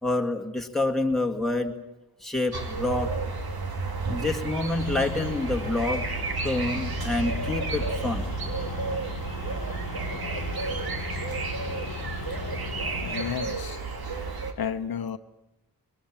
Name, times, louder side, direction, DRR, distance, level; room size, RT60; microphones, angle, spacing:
voice 1, 0.0-1.7 2.2-3.1 4.1-6.0 6.4-8.3, left 2 dB, ahead, 1 dB, 2.2 m, -27 dB
sound 1, 2.5-14.5, right 4 dB, 90° right, 2.6 m, -32 dB
sound 2, 4.7-13.3, left 4 dB, 65° left, 1.3 m, -36 dB
voice 2, 13.0-13.8 14.6-15.2, left 8 dB, 85° left, 8 dB, 0.9 m, -32 dB
22.5 x 21.0 x 8.9 m, 0.92 s
wide cardioid pair, 110°, 36 cm